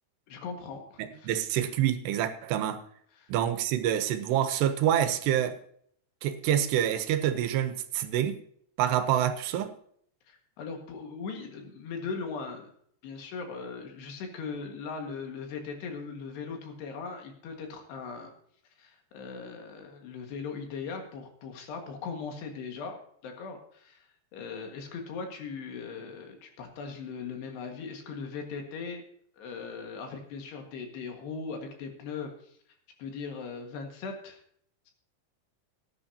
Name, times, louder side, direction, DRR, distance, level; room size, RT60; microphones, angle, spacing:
voice 1, 0.3-1.3 3.2-3.3 10.3-12.7 13.0-18.3 18.8-24.1 24.3-29.1 29.4-32.6 33.0-34.4, left 5 dB, 80° left, 3.8 m, -39 dB
voice 2, 1.2-2.8 3.3-5.6 6.2-8.4 8.8-9.7, right 10 dB, 85° right, 3.0 m, -27 dB
18.5 x 9.8 x 2.8 m
omnidirectional pair, 4.7 m